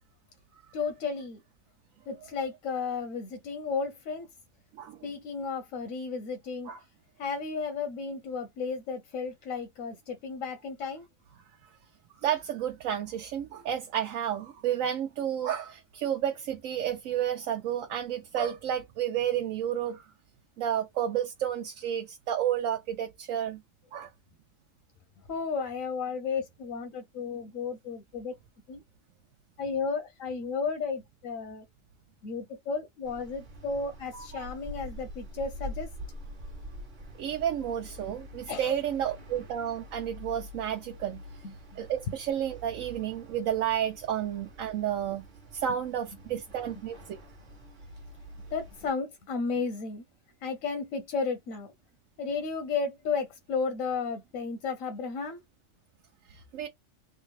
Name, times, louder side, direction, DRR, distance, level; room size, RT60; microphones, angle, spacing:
voice 1, 0.7-1.4 2.1-4.3 5.0-6.7 7.2-11.0 25.3-28.3 28.7-28.8 29.6-31.6 32.2-35.9 38.5-38.8 41.4-41.5 48.5-50.0 50.4-51.7 52.2-55.4, left 5 dB, 85° left, 1.1 m, -33 dB
voice 2, 12.2-20.0 20.6-23.6 23.9-24.1 34.1-34.5 37.2-41.2 41.8-45.2 45.5-47.2 56.3-56.7, right 10 dB, 85° right, 1.1 m, -31 dB
sound 1, 33.0-48.9, equal, 40° right, 1.1 m, -46 dB
3.5 x 2.4 x 3.1 m
omnidirectional pair, 1.4 m